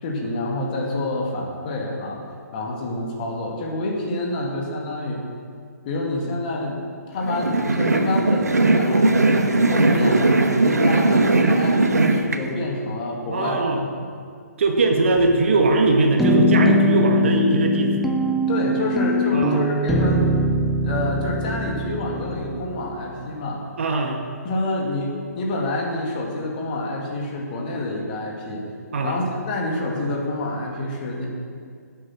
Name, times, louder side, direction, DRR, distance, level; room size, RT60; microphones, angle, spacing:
voice 1, 0.0-2.2 2.5-5.2 5.8-10.4 10.6-13.6 18.5-20.3 20.8-23.7 24.4-28.6 29.0-31.3, left 2 dB, 30° left, -1 dB, 2.2 m, -27 dB
sound 1, 7.2-12.4, right 2 dB, 70° right, 1.2 m, -18 dB
voice 2, 13.3-13.8 14.6-18.0 19.3-19.6 23.8-24.2 28.9-29.2, right 2 dB, 45° right, 3 dB, 1.6 m, -20 dB
sound 2, 15.2-15.8 16.2-23.1, left 1 dB, ahead, 0.5 m, -22 dB
16.0 x 8.4 x 6.3 m, 2.2 s
figure-of-eight pair, 135°, 9 cm